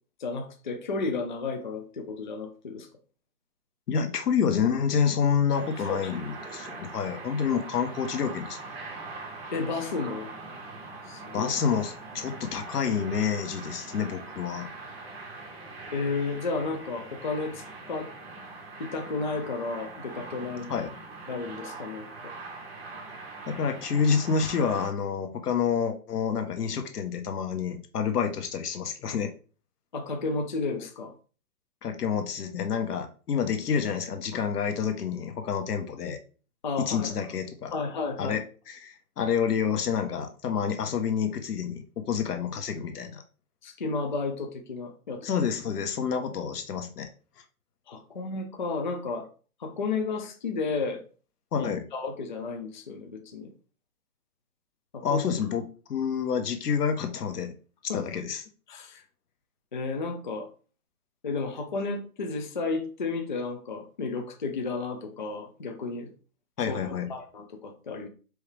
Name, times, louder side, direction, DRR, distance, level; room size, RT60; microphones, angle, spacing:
voice 1, 0.2-2.9 5.8-6.1 9.5-10.3 11.1-11.5 15.9-18.1 18.8-20.7 21.3-22.3 29.9-31.1 36.6-37.1 37.7-38.4 43.6-45.3 47.9-49.3 49.6-51.0 51.6-53.5 54.9-55.2 57.9-58.0 58.7-59.0 59.7-60.5 61.2-66.1 66.7-66.8 67.1-68.1, left 4 dB, 35° left, 4 dB, 0.4 m, -32 dB
voice 2, 3.9-8.6 11.3-14.7 20.7-20.9 23.5-29.3 31.8-36.2 36.8-37.9 38.2-43.2 45.2-47.1 51.5-51.8 55.0-57.5 57.9-58.4 66.6-67.1, left 6 dB, 90° left, 6 dB, 1.2 m, -28 dB
sound 1, 5.5-24.9, right 3 dB, 40° right, 1.5 m, -42 dB
4.6 x 3.3 x 3.3 m, 0.37 s
hypercardioid pair, 170°, 45 cm